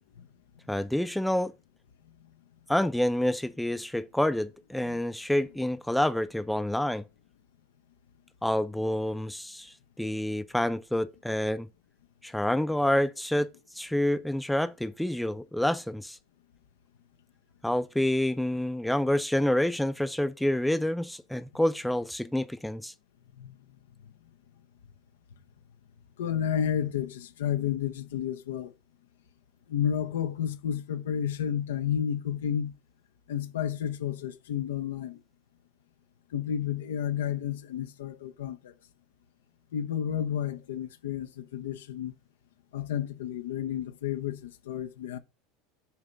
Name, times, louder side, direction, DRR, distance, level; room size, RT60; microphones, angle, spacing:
voice 1, 0.7-1.5 2.7-7.0 8.4-11.7 12.2-13.5 13.7-16.2 17.6-22.9, left 1 dB, 5° left, 0.5 m, -28 dB
voice 2, 26.2-28.7 29.7-32.7 33.3-35.2 36.3-38.7 39.7-42.1 42.7-45.2, left 9 dB, 90° left, 0.7 m, -31 dB
7.2 x 3.3 x 5.0 m
supercardioid pair, 105°, 0 cm